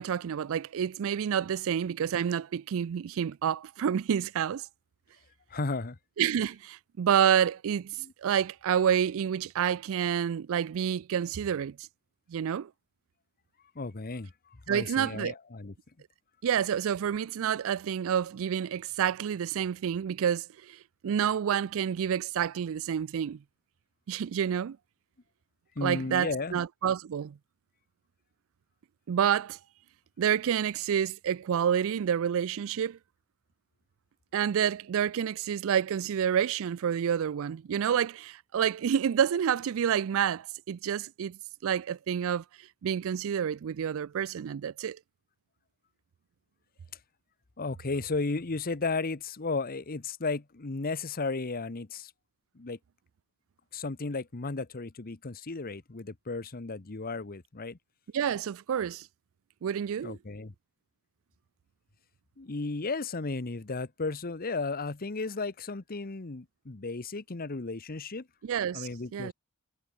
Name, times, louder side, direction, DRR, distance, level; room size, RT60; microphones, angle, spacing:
voice 1, 0.0-4.7 6.2-11.8 12.3-12.7 14.7-15.3 16.4-23.4 24.1-24.8 25.8-27.4 29.1-29.6 30.2-33.0 34.3-42.4 42.8-45.0 58.1-59.1 59.6-60.2 68.4-69.3, right 8 dB, 65° right, 0.4 m, -29 dB
voice 2, 5.5-6.0 8.0-8.1 13.7-15.7 25.8-26.6 47.6-52.1 52.5-52.8 53.7-57.8 60.0-60.5 62.4-68.3 68.7-69.3, left 3 dB, 40° left, 1.0 m, -34 dB
head